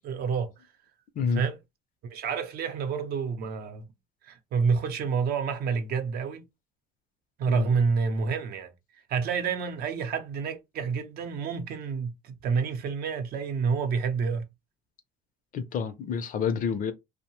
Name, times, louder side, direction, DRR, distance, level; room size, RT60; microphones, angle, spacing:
voice 1, 0.0-0.5 1.3-1.6 2.0-3.8 4.2-6.4 7.4-8.7 9.1-14.5, right 5 dB, 65° right, 0.7 m, -28 dB
voice 2, 15.5-16.9, left 5 dB, 55° left, 0.5 m, -28 dB
2.7 x 2.1 x 3.0 m
cardioid pair, 110°, 17 cm